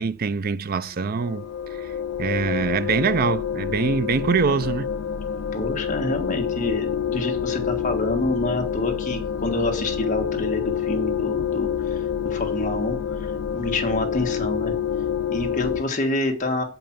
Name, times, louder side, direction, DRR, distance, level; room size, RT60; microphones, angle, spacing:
voice 1, 0.0-4.9, right 5 dB, 50° right, 0.4 m, -24 dB
sound 1, 1.0-15.8, left 8 dB, 70° left, 0.4 m, -27 dB
voice 2, 5.5-14.7 15.3-16.6, left 2 dB, 40° left, 1.6 m, -27 dB
7.5 x 5.4 x 5.8 m
head